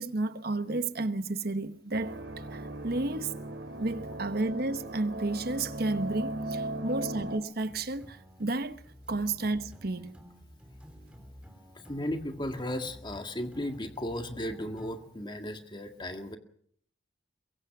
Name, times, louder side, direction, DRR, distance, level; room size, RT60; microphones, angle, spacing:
voice 1, 0.0-3.3 3.8-8.8 9.1-10.1, right 2 dB, 55° right, 1.0 m, -32 dB
sound 1, 1.9-7.4, right 1 dB, 85° right, 2.8 m, -37 dB
sound 2, 7.6-15.1, equal, 5° right, 3.5 m, -51 dB
voice 2, 11.8-16.4, left 1 dB, 25° left, 1.9 m, -35 dB
23.0 x 22.5 x 6.0 m
head